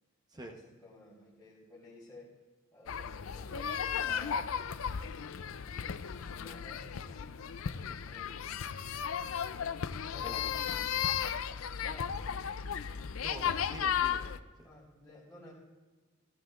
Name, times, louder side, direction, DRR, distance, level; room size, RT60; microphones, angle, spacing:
voice 1, 0.3-2.3 2.7-7.6 8.0-8.5 10.1-11.1 11.8-12.1 12.6-12.8 14.6-15.5, left 1 dB, 5° left, -11 dB, 3.0 m, -54 dB
sound 1, 2.9-14.4, left 8 dB, 80° left, 0.5 m, -35 dB
voice 2, 13.2-14.7, right 1 dB, 20° right, 2 dB, 1.0 m, -47 dB
16.0 x 14.5 x 2.5 m, 1.3 s
head